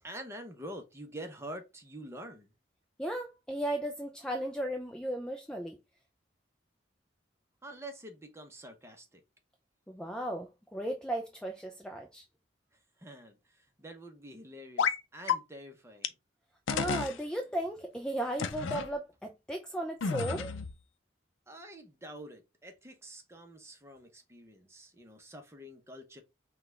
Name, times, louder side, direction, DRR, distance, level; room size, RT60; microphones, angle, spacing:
voice 1, 0.0-2.5 7.6-9.2 12.7-16.1 21.5-26.2, right 1 dB, 15° right, 0.7 m, -47 dB
voice 2, 3.0-5.8 9.9-12.2 16.7-20.5, right 1 dB, 5° left, 0.3 m, -35 dB
sound 1, 14.8-15.0 15.3-15.4 16.0-16.1 16.7-17.2 18.4-18.9 20.0-20.7, left 6 dB, 80° left, 0.5 m, -31 dB
5.7 x 2.3 x 3.2 m
head